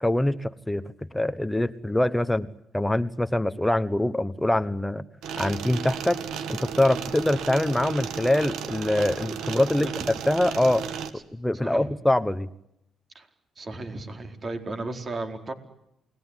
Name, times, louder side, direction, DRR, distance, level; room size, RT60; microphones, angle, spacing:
voice 1, 0.0-0.9 1.1-2.5 2.7-5.0 5.4-6.2 6.5-10.8 11.3-12.5, left 1 dB, 5° left, 13 dB, 1.1 m, -24 dB
sound 1, 5.2-11.1, right 7 dB, 85° right, 2.2 m, -34 dB
voice 2, 13.6-15.5, right 2 dB, 35° right, 5 dB, 4.6 m, -34 dB
29.0 x 20.5 x 10.0 m, 0.81 s
cardioid pair, 90°, 0 cm